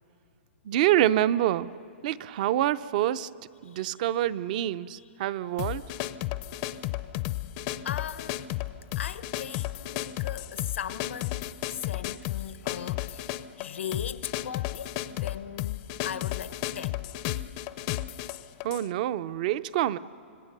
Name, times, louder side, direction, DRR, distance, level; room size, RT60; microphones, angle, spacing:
voice 1, 0.6-1.7 2.0-3.3 3.6-5.8 18.6-20.0, right 12 dB, 40° right, 0.5 m, -26 dB
sound 1, 5.6-18.9, left 15 dB, 30° left, 0.5 m, -33 dB
voice 2, 7.2-8.5 8.9-17.1, left 9 dB, 85° left, 0.9 m, -39 dB
29.5 x 26.0 x 6.7 m
hypercardioid pair, 165°, 7 cm